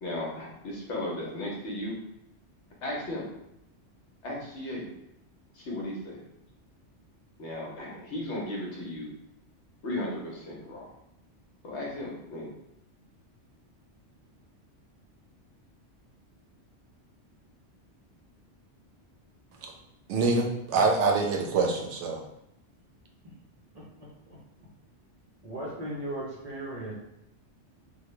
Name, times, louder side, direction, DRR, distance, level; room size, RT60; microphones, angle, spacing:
voice 1, 0.0-1.9 2.8-3.2 4.2-4.8 5.5-6.2 7.4-9.1 9.8-10.9 11.6-12.5, left 1 dB, 70° left, -3 dB, 1.1 m, -35 dB
voice 2, 20.1-22.2, right 3 dB, 75° right, 1 dB, 0.9 m, -25 dB
voice 3, 23.7-24.4 25.4-26.9, right 1 dB, 45° right, -5 dB, 0.6 m, -37 dB
3.2 x 2.2 x 3.1 m, 0.84 s
omnidirectional pair, 1.2 m